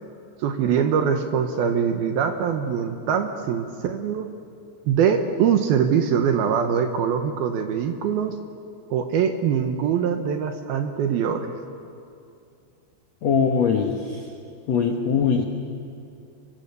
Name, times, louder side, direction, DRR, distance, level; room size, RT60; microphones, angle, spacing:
voice 1, 0.4-4.3 4.9-8.4 8.9-11.5, right 7 dB, 70° right, 6 dB, 2.7 m, -23 dB
voice 2, 13.2-14.2 14.7-15.4, left 6 dB, 80° left, 2 dB, 1.5 m, -21 dB
29.0 x 24.5 x 6.9 m, 2.5 s
omnidirectional pair, 5.1 m